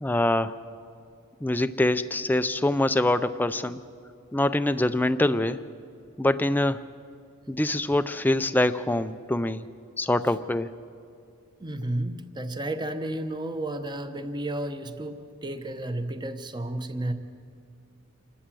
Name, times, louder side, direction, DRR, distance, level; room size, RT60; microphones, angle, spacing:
voice 1, 0.0-0.6 1.4-3.8 4.3-5.6 6.2-6.8 7.5-9.6 10.0-10.7, left 1 dB, 10° left, 11 dB, 0.4 m, -24 dB
voice 2, 11.6-17.1, right 1 dB, 20° right, 9 dB, 0.9 m, -32 dB
28.0 x 13.0 x 7.6 m, 2.5 s
head